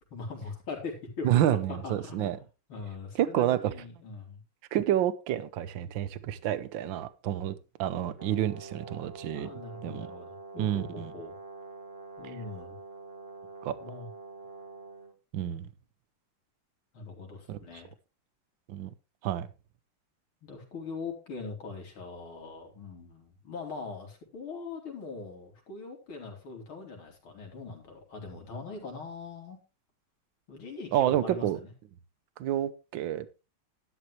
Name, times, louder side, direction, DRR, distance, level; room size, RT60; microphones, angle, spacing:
voice 1, 0.1-1.3 1.7-2.4 2.7-4.4 9.3-11.4 12.2-12.8 13.8-14.1 16.9-17.9 20.4-29.6 30.5-31.7, left 4 dB, 70° left, 3.9 m, -41 dB
voice 2, 1.2-2.4 3.2-3.7 4.7-9.5 9.8-10.1 10.6-11.1 13.6-13.7 15.3-15.7 17.5-17.6 18.7-18.9 19.2-19.5 30.9-31.6 32.4-33.5, right 11 dB, 70° right, 1.5 m, -29 dB
Brass instrument, 8.1-15.1, right 3 dB, 25° right, 2.2 m, -46 dB
12.0 x 11.0 x 3.2 m
omnidirectional pair, 2.4 m